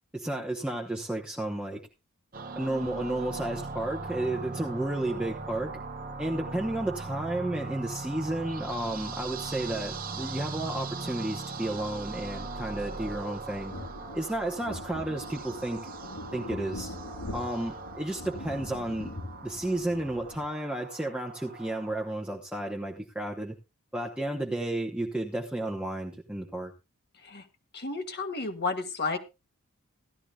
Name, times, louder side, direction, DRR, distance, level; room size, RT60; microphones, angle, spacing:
voice 1, 0.1-1.8 2.5-5.7 6.2-13.7 14.1-15.8 16.3-16.9 17.3-19.1 19.4-23.6 23.9-26.7, right 1 dB, 5° right, 0 dB, 0.9 m, -32 dB
sound 1, 2.3-22.1, right 3 dB, 40° right, 0.9 m, -39 dB
sound 2, 13.7-20.5, left 1 dB, 90° left, 3.8 m, -42 dB
voice 2, 27.7-29.2, left 4 dB, 50° left, 6 dB, 1.6 m, -32 dB
16.5 x 12.0 x 2.3 m, 0.27 s
head